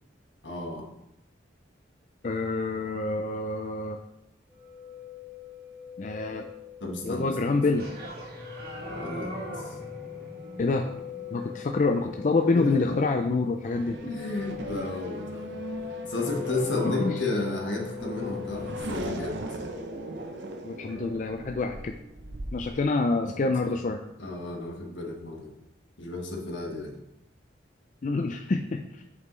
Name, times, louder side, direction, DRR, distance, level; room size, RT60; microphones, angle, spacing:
voice 1, 0.4-0.9 6.8-7.6 8.9-9.7 12.5-12.8 14.0-15.5 16.1-19.4 24.2-25.5 26.0-26.9, left 2 dB, 75° left, 1 dB, 1.4 m, -33 dB
voice 2, 2.2-4.0 6.0-6.5 7.0-7.9 10.6-10.9 11.3-14.0 17.0-17.2 20.6-21.9 22.5-24.0 28.0-29.0, left 3 dB, 40° left, 4 dB, 0.4 m, -27 dB
sound 1, 4.6-18.8, left 11 dB, 5° right, 1.2 m, -41 dB
sound 2, 7.8-21.1, equal, 55° right, 1.6 m, -42 dB
Race car auto racing / Accelerating revving vroom, 13.6-22.7, right 2 dB, 70° right, 0.7 m, -40 dB
7.9 x 5.3 x 3.2 m, 0.83 s
head